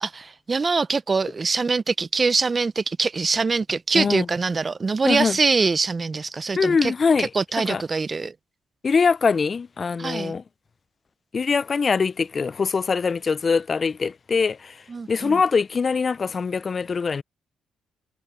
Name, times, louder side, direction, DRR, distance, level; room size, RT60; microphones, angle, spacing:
voice 1, 0.0-6.9 7.2-8.3 10.0-10.3 14.9-15.4, right 4 dB, 30° right, 0.4 m, -24 dB
voice 2, 3.9-4.3 5.0-5.4 6.6-7.3 7.7-7.8 8.8-10.4 11.3-14.8 15.1-17.2, left 5 dB, 40° left, 0.3 m, -23 dB
cardioid pair, 90°, 0 cm